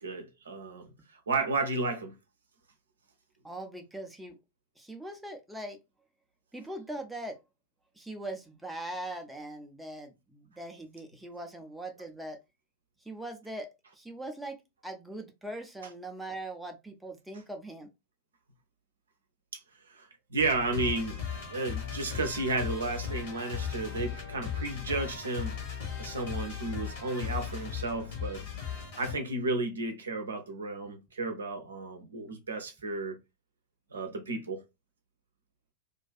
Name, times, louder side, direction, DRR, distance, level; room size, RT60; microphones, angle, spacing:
voice 1, 0.0-0.9 1.3-2.1 19.9-21.2 21.5-25.5 26.0-28.4 29.0-33.2 33.9-34.6, right 3 dB, 70° right, 0.5 m, -33 dB
voice 2, 3.4-4.4 4.8-5.8 6.5-7.4 8.0-12.4 13.0-14.6 14.8-17.9, right 1 dB, 5° right, 0.5 m, -41 dB
sound 1, 20.4-29.1, left 8 dB, 50° left, 1.2 m, -37 dB
2.4 x 2.4 x 2.3 m
figure-of-eight pair, 90°, 0 cm